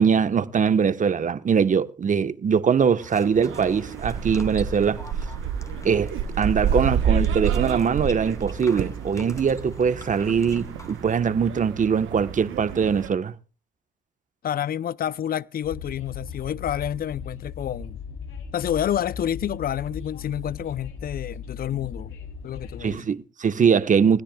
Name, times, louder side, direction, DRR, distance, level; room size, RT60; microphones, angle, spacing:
voice 1, 0.0-5.0 5.8-6.1 6.4-13.3 22.8-24.2, right 6 dB, 40° right, 1.1 m, -22 dB
sound 1, 3.0-11.3, left 2 dB, 15° left, 1.9 m, -45 dB
sound 2, 3.4-13.1, right 7 dB, 85° right, 1.3 m, -29 dB
voice 2, 14.4-18.0 18.5-22.1 22.4-23.0, left 10 dB, 50° left, 0.6 m, -29 dB
Train, 15.6-22.9, left 5 dB, 85° left, 3.2 m, -38 dB
21.0 x 16.5 x 2.3 m
cardioid pair, 90°, 20 cm